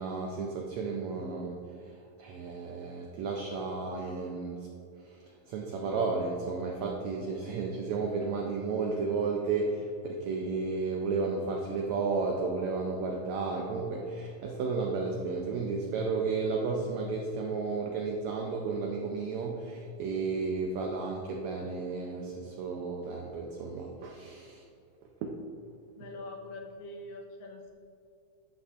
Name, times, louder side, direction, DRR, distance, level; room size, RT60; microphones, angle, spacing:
voice 1, 0.0-4.7 5.0-24.7 25.2-25.4, right 4 dB, 85° right, 1 dB, 1.6 m, -33 dB
voice 2, 26.0-27.7, left 2 dB, 80° left, 0 dB, 2.7 m, -43 dB
11.0 x 8.1 x 2.5 m, 2.6 s
omnidirectional pair, 4.0 m